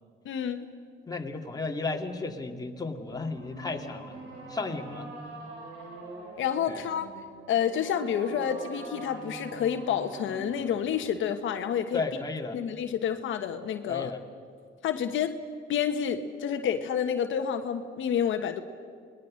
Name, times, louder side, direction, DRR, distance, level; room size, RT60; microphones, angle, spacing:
voice 1, 0.2-0.7 6.4-7.1 7.5-12.0 12.5-14.1 14.8-15.4 15.7-18.6, left 8 dB, 75° left, 7 dB, 1.3 m, -29 dB
voice 2, 1.1-4.2 4.5-5.1 6.7-6.8 11.9-12.6 13.9-14.2, left 3 dB, 20° left, 2 dB, 2.5 m, -34 dB
sound 1, 3.1-11.1, right 2 dB, 90° right, 4.1 m, -44 dB
28.0 x 20.5 x 6.5 m, 2.2 s
cardioid pair, 90°, 20 cm